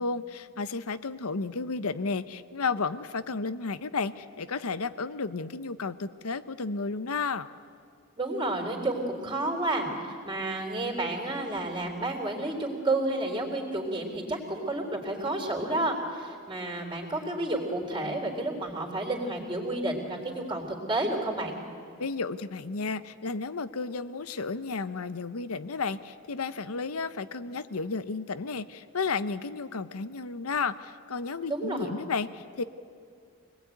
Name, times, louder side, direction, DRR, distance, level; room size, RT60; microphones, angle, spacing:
voice 1, 0.0-7.5 22.0-32.6, left 4 dB, 85° left, 12 dB, 0.8 m, -32 dB
voice 2, 8.2-21.6 31.5-31.9, right 2 dB, 20° right, 2 dB, 3.8 m, -31 dB
25.5 x 20.0 x 9.3 m, 2.3 s
head